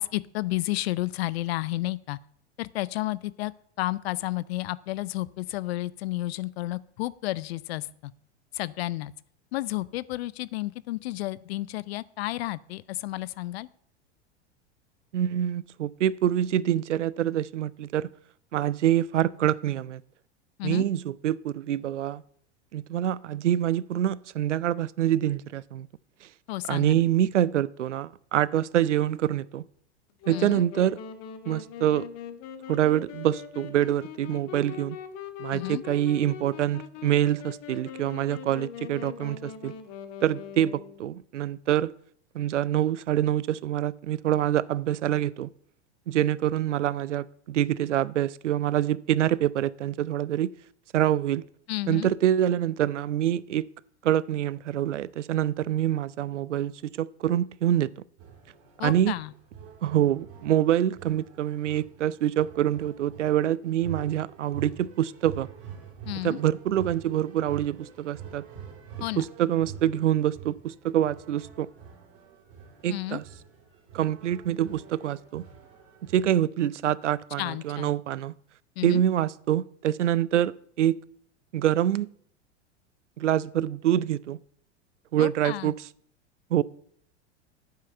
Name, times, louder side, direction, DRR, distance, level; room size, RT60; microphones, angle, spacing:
voice 1, 0.0-2.2 2.6-3.5 3.8-8.1 8.5-9.1 9.5-13.7 20.6-20.9 26.5-27.0 30.3-30.6 35.5-35.8 51.7-52.1 58.8-59.3 66.1-66.4 69.0-69.3 72.9-73.2 77.4-77.9 78.8-79.0 85.2-85.7, left 17 dB, 60° left, 0.5 m, -31 dB
voice 2, 15.1-18.1 18.5-20.0 20.6-22.2 22.7-25.9 26.7-29.6 30.3-31.0 31.5-32.1 32.7-35.0 35.4-39.7 40.2-41.9 42.3-45.5 46.1-50.5 50.9-51.4 51.9-53.7 54.0-58.0 58.8-59.1 59.8-65.5 66.2-68.4 69.2-71.7 72.8-73.2 73.9-75.4 76.0-78.3 78.8-81.0 81.5-82.1 83.2-84.4 85.1-85.7 86.5-86.6, right 11 dB, 85° right, 0.5 m, -26 dB
Wind instrument woodwind instrument, 30.2-41.1, left 8 dB, 45° left, 1.3 m, -41 dB
sound 1, 58.2-76.4, right 7 dB, 50° right, 3.2 m, -46 dB
8.8 x 5.6 x 7.9 m
hypercardioid pair, 100°, 35 cm